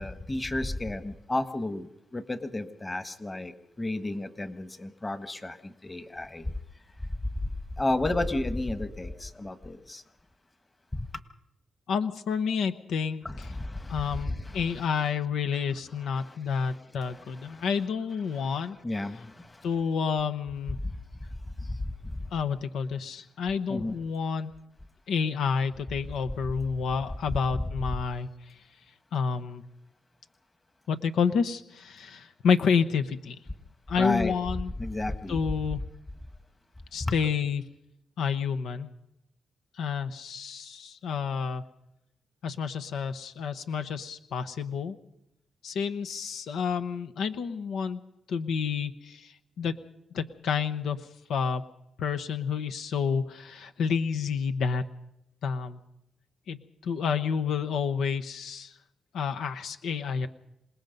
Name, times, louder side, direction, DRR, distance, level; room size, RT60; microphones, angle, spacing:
voice 1, 0.0-1.9 2.1-3.5 3.8-5.6 5.8-6.4 7.8-10.0 13.2-14.8 18.8-19.3 23.7-24.0 34.0-34.3 34.8-35.4 37.0-37.1, left 2 dB, 25° left, 10 dB, 1.5 m, -32 dB
voice 2, 11.9-13.5 13.9-18.8 19.6-20.8 22.3-24.5 25.1-28.6 29.1-29.6 30.9-33.4 33.9-34.7 35.3-35.8 36.9-37.7 38.2-38.9 39.7-41.6 42.4-45.0 45.6-48.0 48.3-49.8 50.1-51.6 52.0-54.8 55.4-55.8 56.5-58.8 59.1-60.3, left 6 dB, 85° left, 9 dB, 0.9 m, -29 dB
27.0 x 18.5 x 5.3 m, 0.82 s
cardioid pair, 75°, 0 cm